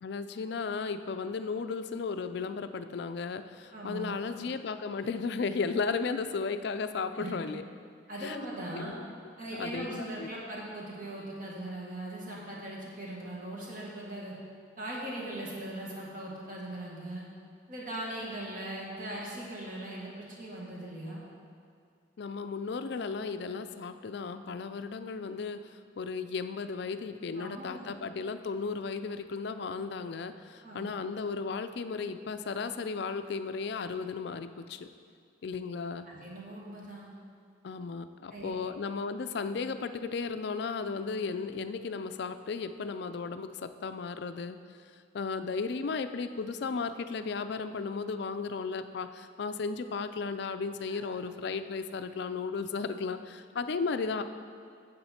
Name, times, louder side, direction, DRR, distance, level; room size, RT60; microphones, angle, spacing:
voice 1, 0.0-7.6 8.2-8.4 8.7-9.0 9.6-10.3 22.2-34.9 35.4-36.1 37.6-44.6 45.1-54.2, left 4 dB, 60° left, 10 dB, 0.4 m, -35 dB
voice 2, 3.7-4.2 7.1-7.4 8.1-9.0 9.4-14.4 14.8-17.2 17.7-21.2 27.4-27.9 30.6-30.9 36.1-37.1 38.3-38.5 50.9-51.2, right 1 dB, 45° right, -4 dB, 1.9 m, -40 dB
8.8 x 7.6 x 4.3 m, 2.3 s
head